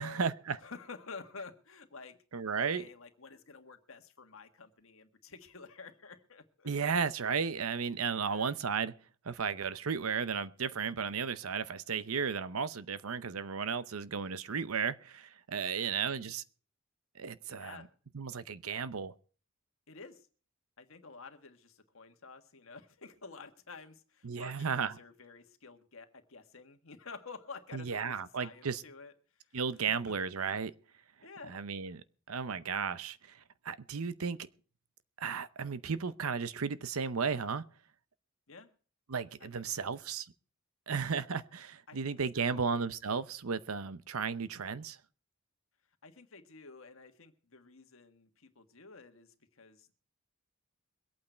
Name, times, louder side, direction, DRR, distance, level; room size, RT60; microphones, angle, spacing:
voice 1, 0.0-0.6 2.3-2.8 6.6-8.9 9.2-16.4 17.2-17.9 18.1-19.1 24.2-24.9 27.7-28.8 29.5-30.7 31.5-33.4 33.6-34.4 35.2-37.6 39.1-40.3 40.9-45.0, right 6 dB, 90° right, 0.8 m, -34 dB
voice 2, 0.6-2.2 2.6-6.7 8.2-8.5 15.5-16.3 17.5-17.9 19.9-20.3 20.8-29.1 29.4-29.6 31.2-31.5 38.5-38.7 39.4-40.0 41.9-42.7 46.0-49.9, left 4 dB, 70° left, 1.6 m, -51 dB
23.0 x 8.7 x 4.5 m
head